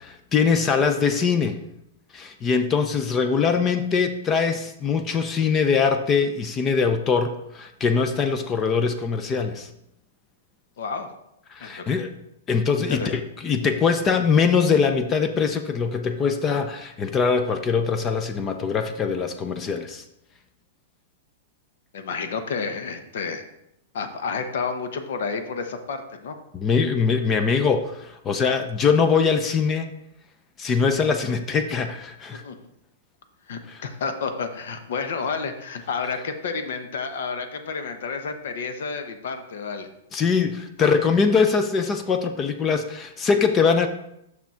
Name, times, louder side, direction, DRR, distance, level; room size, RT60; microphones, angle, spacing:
voice 1, 0.0-1.6 2.1-9.7 11.5-12.1 12.5-20.0 26.5-29.9 30.6-32.4 33.7-33.8 40.1-43.9, left 5 dB, 20° left, 8 dB, 0.4 m, -22 dB
voice 2, 10.8-11.1 11.6-11.9 12.8-13.1 21.9-23.4 23.9-26.4 32.4-32.5 33.5-39.9 40.8-40.9, left 5 dB, 70° left, 7 dB, 0.9 m, -30 dB
6.1 x 5.9 x 4.3 m, 0.81 s
hypercardioid pair, 160°, 0 cm